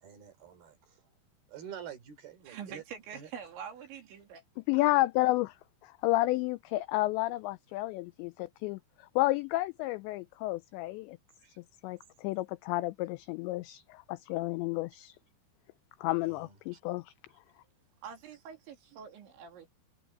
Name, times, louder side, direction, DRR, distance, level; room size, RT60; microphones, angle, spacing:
voice 1, 0.0-1.0 1.5-2.8 3.1-3.3 11.4-11.6 16.2-16.8, right 9 dB, 55° right, 5.3 m, -48 dB
voice 2, 2.5-4.4 18.0-19.7, right 7 dB, 70° right, 5.2 m, -45 dB
voice 3, 4.7-5.6 5.8-11.2 11.8-15.2 16.0-17.1, left 18 dB, 90° left, 2.5 m, -31 dB
omnidirectional pair, 5.7 m